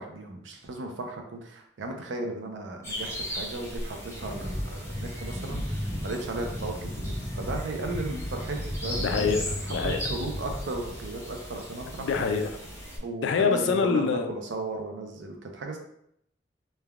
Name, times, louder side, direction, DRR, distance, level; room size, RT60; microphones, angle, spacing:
voice 1, 0.0-9.3 9.7-12.1 13.0-15.8, right 2 dB, 90° right, 3 dB, 0.5 m, -36 dB
sound 1, 2.8-13.0, equal, 15° left, 0.6 m, -39 dB
sound 2, 4.1-11.1, equal, 20° right, 0.7 m, -35 dB
voice 2, 9.0-10.0 12.0-12.6 13.2-14.3, left 5 dB, 85° left, 6 dB, 0.3 m, -25 dB
3.2 x 2.2 x 2.3 m, 0.74 s
head